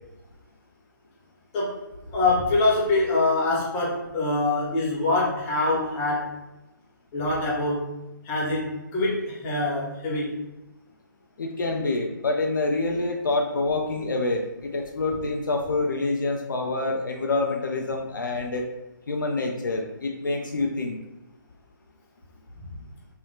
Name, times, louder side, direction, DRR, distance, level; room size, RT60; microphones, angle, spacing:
voice 1, 2.1-6.4 7.1-7.9 8.2-10.4, left 2 dB, 20° left, -5 dB, 0.7 m, -24 dB
voice 2, 11.4-18.6 19.1-21.0, left 3 dB, 65° left, 2 dB, 0.4 m, -27 dB
3.5 x 2.2 x 2.7 m, 0.99 s
figure-of-eight pair, 140°, 11 cm